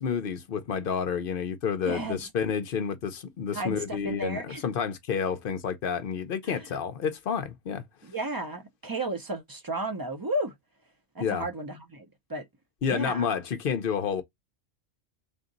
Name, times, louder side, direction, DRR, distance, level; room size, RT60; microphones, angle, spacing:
voice 1, 0.0-7.8 11.2-11.5 12.8-14.2, left 7 dB, 55° left, 0.7 m, -30 dB
voice 2, 1.8-2.2 3.5-4.6 6.4-6.7 8.0-10.5 11.1-12.5 12.9-13.3, right 1 dB, 35° right, 0.3 m, -33 dB
3.5 x 2.7 x 3.8 m
omnidirectional pair, 1.3 m